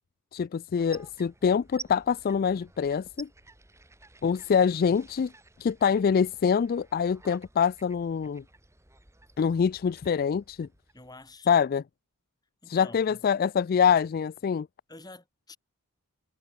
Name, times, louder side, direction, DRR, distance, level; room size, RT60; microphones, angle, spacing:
voice 1, 0.3-3.3 4.2-5.3 5.6-8.4 9.4-10.7 11.5-11.8 12.7-14.7, left 7 dB, 45° left, 0.3 m, -25 dB
sound 1, 0.8-11.6, right 3 dB, 15° right, 3.0 m, -52 dB
voice 2, 10.9-11.6 12.6-13.2 14.9-15.6, left 2 dB, 20° left, 6.0 m, -48 dB
head